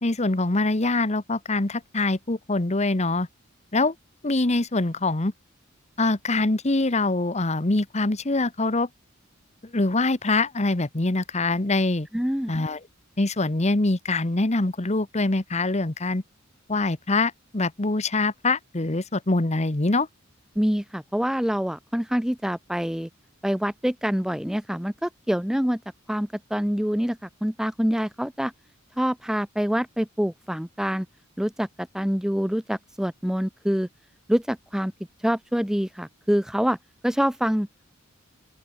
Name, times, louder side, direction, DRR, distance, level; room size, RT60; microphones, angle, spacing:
voice 1, 0.0-3.3 3.7-3.9 4.2-5.3 6.0-8.9 9.7-12.1 12.5-12.8 13.2-16.2 16.7-20.1, left 2 dB, 35° left, 1.2 m, -24 dB
voice 2, 12.1-12.5 20.6-23.1 23.4-25.8 26.1-28.5 29.0-31.1 31.4-33.9 34.3-34.9 35.2-36.8 37.0-37.7, equal, 5° right, 0.6 m, -26 dB
open air
head